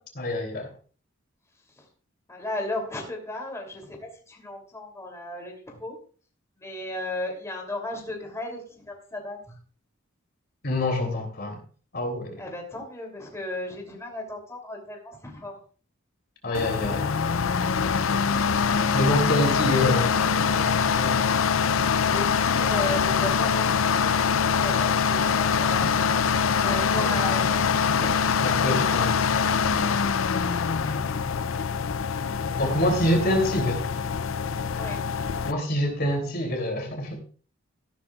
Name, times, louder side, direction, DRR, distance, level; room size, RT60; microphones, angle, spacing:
voice 1, 0.1-0.7 10.6-11.6 11.9-12.4 16.4-17.1 18.9-21.3 27.0-27.1 28.4-29.3 32.5-33.8 35.4-37.2, left 1 dB, 50° left, 3 dB, 3.2 m, -26 dB
voice 2, 2.3-6.0 6.6-9.6 12.4-15.6 22.0-26.3 26.6-27.7 28.0-28.5 34.7-35.0, left 1 dB, 15° left, 0 dB, 3.1 m, -35 dB
sound 1, 16.5-35.5, left 6 dB, 85° left, 0.6 m, -24 dB
14.5 x 12.0 x 2.5 m, 0.40 s
head